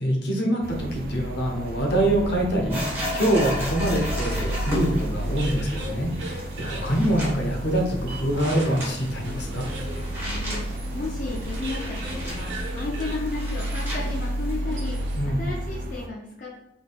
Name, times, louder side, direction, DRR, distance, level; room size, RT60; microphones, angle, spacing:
voice 1, 0.0-9.7 15.1-15.4, right 1 dB, 65° left, 1 dB, 0.8 m, -25 dB
sound 1, 0.6-16.1, right 1 dB, 50° right, 0.4 m, -32 dB
sound 2, 2.7-14.6, equal, 15° right, 1.2 m, -36 dB
sound 3, 4.1-15.4, right 1 dB, 85° right, 1.0 m, -40 dB
voice 2, 10.3-16.6, left 3 dB, 45° left, -4 dB, 0.5 m, -34 dB
3.8 x 3.5 x 2.3 m, 0.94 s
head